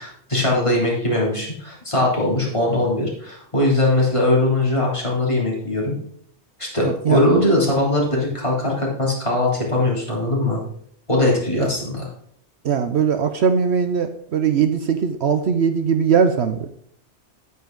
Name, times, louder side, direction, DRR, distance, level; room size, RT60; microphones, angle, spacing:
voice 1, 0.0-6.0 6.6-10.6 11.1-12.1, left 1 dB, 25° left, -4 dB, 3.4 m, -20 dB
voice 2, 6.8-7.2 12.6-16.7, right 6 dB, 65° right, 9 dB, 1.0 m, -20 dB
9.6 x 9.3 x 3.9 m, 0.63 s
omnidirectional pair, 1.2 m